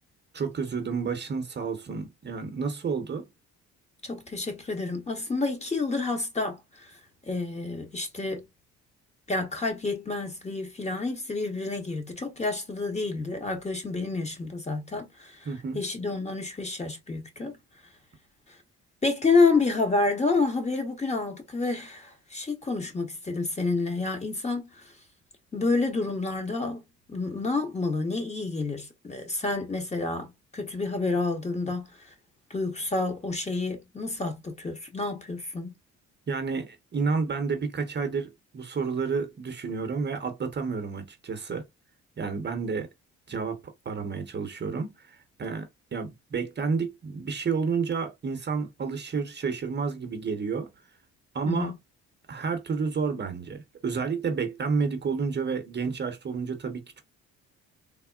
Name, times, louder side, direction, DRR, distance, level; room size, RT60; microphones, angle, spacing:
voice 1, 0.3-3.3 15.4-15.8 36.3-41.7 42.2-42.9 43.3-50.7 51.3-51.7 52.3-57.0, right 5 dB, 35° right, 0.7 m, -30 dB
voice 2, 4.0-6.9 7.3-8.4 9.3-15.5 15.7-17.6 19.0-24.9 25.5-26.8 27.1-31.9 32.5-35.7 51.5-51.7, left 3 dB, 20° left, 0.9 m, -29 dB
3.5 x 2.0 x 2.3 m
cardioid pair, 90°, 30 cm